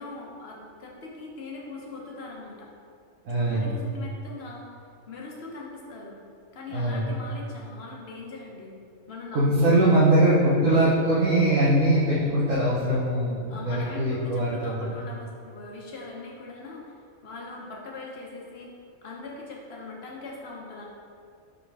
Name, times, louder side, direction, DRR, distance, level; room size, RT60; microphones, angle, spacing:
voice 1, 0.0-2.7 3.4-4.8 5.1-6.1 6.5-8.7 9.1-10.3 13.5-18.7 19.0-20.9, left 3 dB, 55° left, -3 dB, 1.3 m, -41 dB
voice 2, 3.2-3.7 6.7-7.1 9.3-14.9, right 1 dB, 90° right, -8 dB, 1.4 m, -22 dB
6.4 x 3.7 x 4.7 m, 2.4 s
omnidirectional pair, 1.3 m